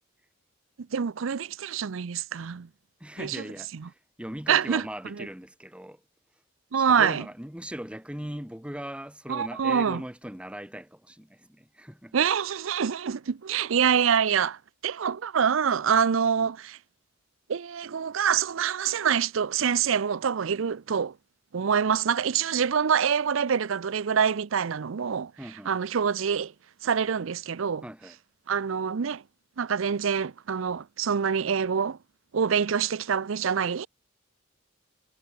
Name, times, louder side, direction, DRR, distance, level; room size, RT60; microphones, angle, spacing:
voice 1, 0.9-2.7 3.2-3.4 4.5-4.8 5.1-5.3 6.7-7.2 9.3-10.0 12.1-16.8 17.5-21.1 21.5-25.3 25.7-26.5 26.8-27.8 28.5-29.2 29.6-32.0 32.3-33.9, right 7 dB, 75° right, 0.5 m, -25 dB
voice 2, 3.0-6.0 6.8-12.1 25.4-25.7 27.8-28.2, equal, 5° right, 1.3 m, -39 dB
head